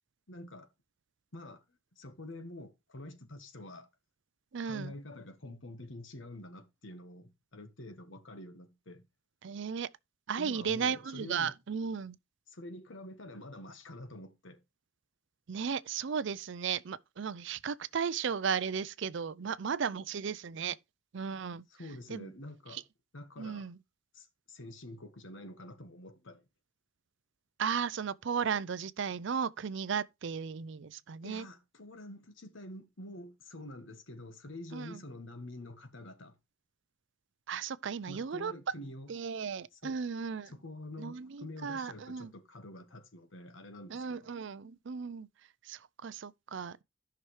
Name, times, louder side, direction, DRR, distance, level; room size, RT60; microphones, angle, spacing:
voice 1, 0.3-0.7 1.3-3.9 4.6-9.1 10.4-11.5 12.5-14.6 21.7-22.8 23.1-23.7 24.1-26.4 31.2-36.4 38.1-39.1 39.7-40.0 40.5-44.3, left 1 dB, 65° left, 1.3 m, -47 dB
voice 2, 4.5-4.9 9.4-9.9 10.3-12.2 15.5-20.8 21.1-21.6 22.1-22.3 22.7-22.8 23.4-23.8 27.6-31.5 34.7-35.0 37.5-38.5 39.1-40.5 41.0-42.3 43.9-45.3 45.6-46.8, right 6 dB, 60° right, 0.5 m, -35 dB
14.0 x 5.9 x 3.2 m
head